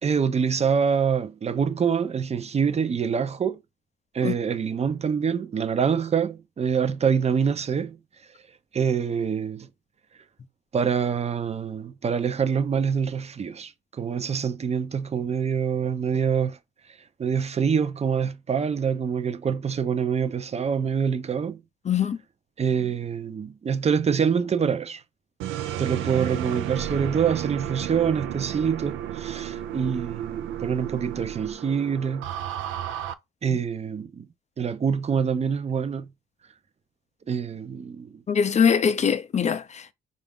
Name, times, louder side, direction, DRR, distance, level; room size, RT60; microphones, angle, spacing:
voice 1, 0.0-3.6 4.1-8.0 8.7-9.7 10.7-16.6 17.2-21.6 22.6-25.0 25.8-32.3 33.4-34.3 34.6-36.1 37.3-38.2, right 6 dB, 35° right, 0.5 m, -25 dB
voice 2, 21.9-22.2 33.5-33.6 38.3-39.9, left 7 dB, 35° left, 0.5 m, -22 dB
sound 1, 25.4-33.1, right 11 dB, 85° right, 0.4 m, -32 dB
4.0 x 2.5 x 3.6 m
cardioid pair, 90°, 20 cm